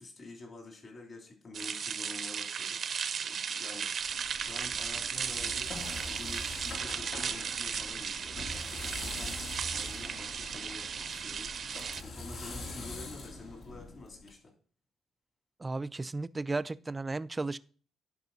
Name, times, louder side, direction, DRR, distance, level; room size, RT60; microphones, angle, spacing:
voice 1, 0.0-2.8 3.2-11.5 11.9-14.5, left 2 dB, 40° left, 2.9 m, -49 dB
sound 1, 1.5-12.0, right 7 dB, 55° right, 0.7 m, -36 dB
sound 2, 4.0-14.3, left 2 dB, 65° left, 2.5 m, -44 dB
voice 2, 15.6-17.6, right 3 dB, 20° right, 0.4 m, -34 dB
11.0 x 4.9 x 4.0 m
cardioid pair, 90°, 0 cm